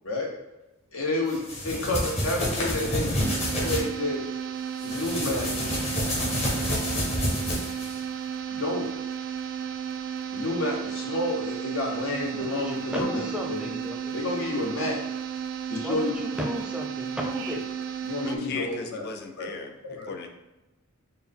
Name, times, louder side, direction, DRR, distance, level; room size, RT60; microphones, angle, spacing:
voice 1, 0.9-3.2 3.6-4.2 4.8-5.5 8.5-8.9 10.3-13.7 14.1-15.0 15.7-16.2 18.0-19.1 19.4-19.5 19.8-20.1, left 1 dB, 75° left, 0 dB, 0.9 m, -30 dB
sound 1, 1.3-3.8 4.8-8.0, left 1 dB, 30° left, 0.9 m, -28 dB
sound 2, 3.2-18.4, right 8 dB, 55° right, 0.3 m, -33 dB
voice 2, 12.4-14.1 15.8-17.6 18.2-18.5, left 1 dB, 5° right, 0 dB, 0.5 m, -34 dB
voice 3, 18.3-19.7 20.1-20.3, left 5 dB, 50° left, 4 dB, 0.4 m, -36 dB
4.4 x 2.0 x 3.5 m, 1.0 s
head